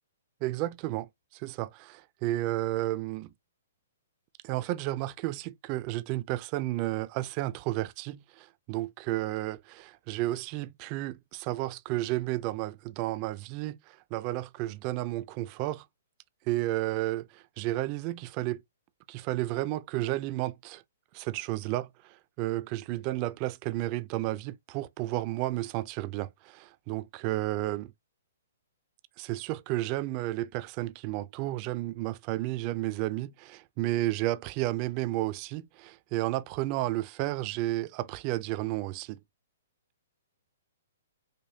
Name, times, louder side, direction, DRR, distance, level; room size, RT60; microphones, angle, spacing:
voice 1, 0.4-3.3 4.4-9.6 10.1-15.9 16.5-18.6 19.1-20.8 21.1-27.9 29.2-39.2, right 17 dB, 35° right, 0.4 m, -32 dB
5.0 x 2.2 x 2.7 m
hypercardioid pair, 145°, 0 cm